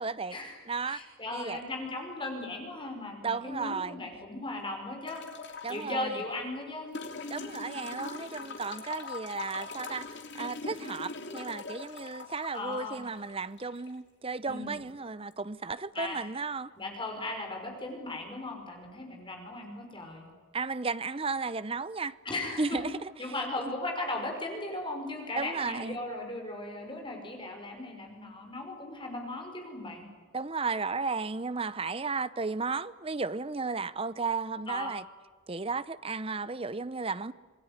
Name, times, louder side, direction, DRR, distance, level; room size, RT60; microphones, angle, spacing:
voice 1, 0.0-0.4 0.7-1.0 1.3-1.6 3.2-4.0 5.6-6.2 7.3-16.7 20.5-22.2 22.6-23.1 23.6-23.7 25.4-26.0 30.3-35.0 35.5-37.3, right 4 dB, 25° right, 0.7 m, -34 dB
voice 2, 0.9-5.3 5.7-7.2 12.5-13.0 14.5-14.8 15.9-16.2 16.8-20.3 22.3-22.9 23.2-30.1 34.7-34.9, left 2 dB, 20° left, 5.4 m, -37 dB
sound 1, 5.1-5.9 6.9-13.9 15.3-15.4, left 4 dB, 55° left, 2.9 m, -41 dB
27.5 x 19.5 x 9.6 m
head